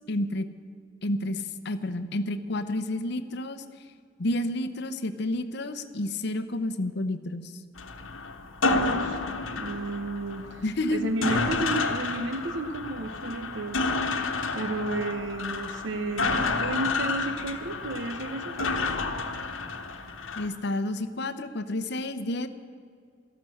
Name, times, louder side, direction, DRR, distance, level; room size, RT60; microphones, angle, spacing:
voice 1, 0.1-0.5 1.0-3.6 4.2-7.5 10.6-11.1 20.4-22.5, left 1 dB, 60° left, 10 dB, 0.8 m, -30 dB
sound 1, 7.8-20.5, left 3 dB, 80° left, 1.2 m, -30 dB
voice 2, 8.6-9.2 9.5-10.6 10.9-13.8 14.5-18.9, right 2 dB, 70° right, 9 dB, 0.8 m, -32 dB
13.0 x 12.0 x 7.9 m, 2.2 s
head